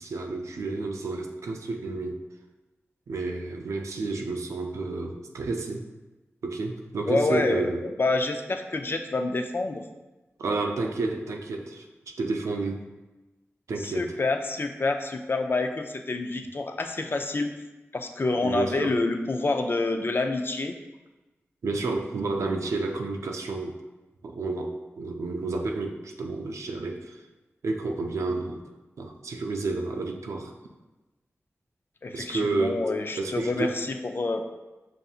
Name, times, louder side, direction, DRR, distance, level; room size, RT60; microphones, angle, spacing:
voice 1, 0.0-2.2 3.1-5.8 6.4-7.8 10.4-12.9 13.7-14.1 18.4-19.0 21.6-23.8 24.2-27.2 27.6-28.6 29.0-30.5 32.1-32.9 33.2-33.8, right 3 dB, 85° right, 3 dB, 0.4 m, -30 dB
voice 2, 7.1-9.8 13.8-17.6 17.9-20.8 32.0-34.4, left 3 dB, 50° left, 5 dB, 0.4 m, -27 dB
5.4 x 2.6 x 2.4 m, 1.1 s
cardioid pair, 50°, 5 cm